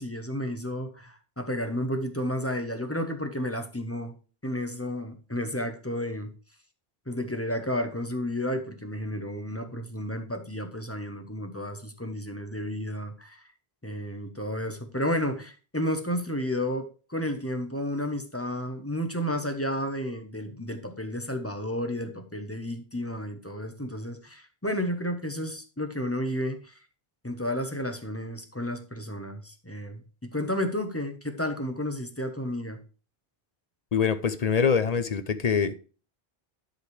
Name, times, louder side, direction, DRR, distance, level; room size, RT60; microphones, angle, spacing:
voice 1, 0.0-4.2 4.4-6.3 7.1-13.4 13.8-26.7 27.2-32.8, left 1 dB, 15° left, 1.0 m, -32 dB
voice 2, 33.9-35.7, left 6 dB, 45° left, 0.6 m, -24 dB
11.5 x 5.0 x 3.3 m
omnidirectional pair, 1.0 m